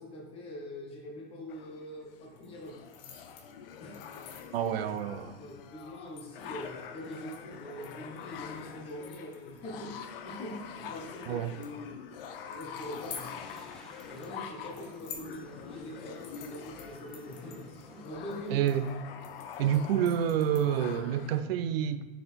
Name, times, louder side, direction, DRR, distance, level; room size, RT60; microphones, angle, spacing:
voice 1, 0.0-2.8 3.8-4.2 5.4-11.6 12.5-13.2 14.1-18.7, equal, 20° left, 1.2 m, -43 dB
sound 1, 1.5-21.4, left 7 dB, 70° left, 0.7 m, -45 dB
sound 2, 2.3-21.0, left 7 dB, 40° left, 1.1 m, -52 dB
voice 2, 4.5-5.4 11.3-11.5 18.5-18.9 19.6-22.1, right 9 dB, 80° right, 0.6 m, -28 dB
sound 3, 12.8-18.6, equal, ahead, 0.6 m, -55 dB
6.5 x 4.1 x 4.4 m
supercardioid pair, 155°, 29 cm